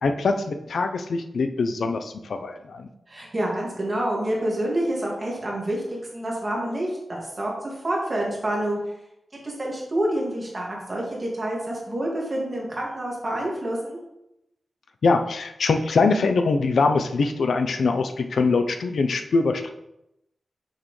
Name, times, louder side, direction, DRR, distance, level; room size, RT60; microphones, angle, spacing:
voice 1, 0.0-2.9 15.0-19.7, left 4 dB, 75° left, 7 dB, 0.6 m, -23 dB
voice 2, 3.1-8.8 9.4-14.0, right 1 dB, 30° right, -3 dB, 2.0 m, -28 dB
6.5 x 6.3 x 3.2 m, 0.84 s
wide cardioid pair, 155°, 0 cm